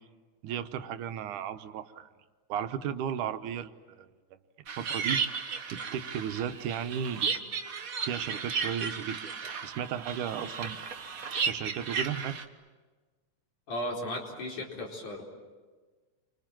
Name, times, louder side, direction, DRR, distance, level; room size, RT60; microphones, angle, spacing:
voice 1, 0.4-2.1 2.5-4.1 4.7-5.2 5.7-7.4 8.0-10.8 11.4-12.4, right 9 dB, 85° right, 9 dB, 2.5 m, -35 dB
sound 1, 4.7-12.4, right 6 dB, 60° right, 0.8 m, -34 dB
voice 2, 13.7-15.2, left 1 dB, 80° left, -1 dB, 5.8 m, -35 dB
29.5 x 25.0 x 7.5 m, 1.3 s
omnidirectional pair, 3.5 m